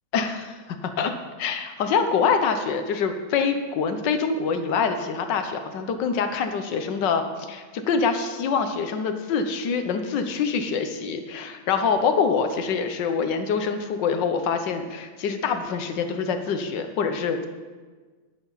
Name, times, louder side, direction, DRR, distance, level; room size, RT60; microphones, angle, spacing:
voice 1, 0.1-0.5 0.8-1.1 1.4-17.5, left 5 dB, 80° left, 7 dB, 1.6 m, -25 dB
12.5 x 10.5 x 4.0 m, 1.4 s
omnidirectional pair, 1.9 m